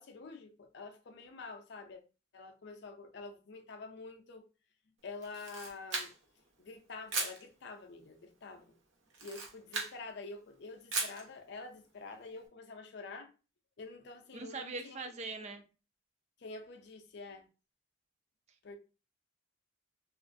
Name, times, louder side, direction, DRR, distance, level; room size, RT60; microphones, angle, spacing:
voice 1, 0.0-2.0 2.3-4.4 5.0-6.1 6.6-8.7 9.2-13.3 13.8-15.0 15.4-15.6 16.4-17.5 18.6-18.8, left 3 dB, 55° left, 0.5 m, -47 dB
Camera, 5.2-6.4 7.1-7.4 9.1-10.0 10.9-11.2, right 4 dB, 70° right, 0.8 m, -37 dB
voice 2, 14.3-15.6, right 3 dB, 35° right, 0.4 m, -41 dB
2.9 x 2.5 x 2.5 m
head